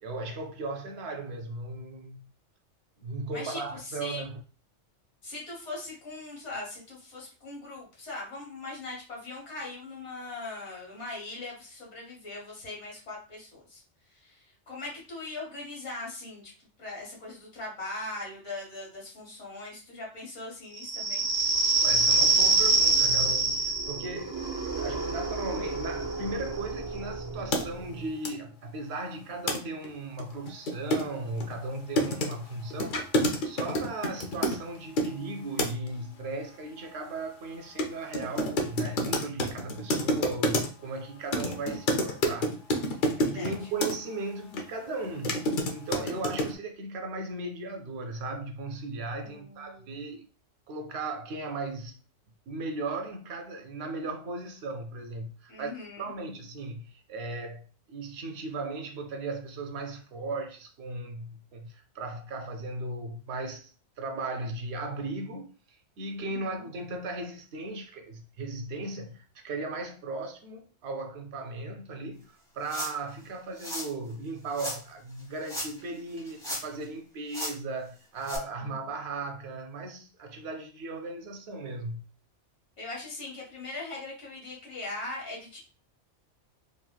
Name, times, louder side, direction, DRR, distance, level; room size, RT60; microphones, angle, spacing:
voice 1, 0.0-2.2 3.0-4.4 21.8-33.0 33.4-42.6 43.2-45.4 45.7-50.3 50.7-52.0 52.5-55.7 56.0-63.7 64.0-82.0, right 2 dB, 65° right, 0.8 m, -37 dB
voice 2, 3.3-4.3 5.2-13.8 14.1-16.5 16.8-21.3 43.2-43.7 49.2-49.9 55.5-56.1 66.2-66.7 78.6-78.7 82.8-85.6, left 2 dB, 70° left, 1.5 m, -40 dB
sound 1, 20.8-28.0, right 3 dB, 45° right, 0.4 m, -26 dB
sound 2, 27.5-27.6 28.2-28.3 29.5-29.6 29.8-29.9 30.2-35.1 35.6-35.9 37.8-37.9 38.1-40.9 41.3-43.9 44.5-44.6 45.0-46.5, left 1 dB, 55° left, 0.6 m, -28 dB
sound 3, 72.7-73.1 73.6-73.9 74.5-74.8 75.4-75.9 76.2-76.8 77.3-77.5 78.2-78.4, equal, 5° left, 1.1 m, -36 dB
3.0 x 2.7 x 2.2 m
omnidirectional pair, 1.2 m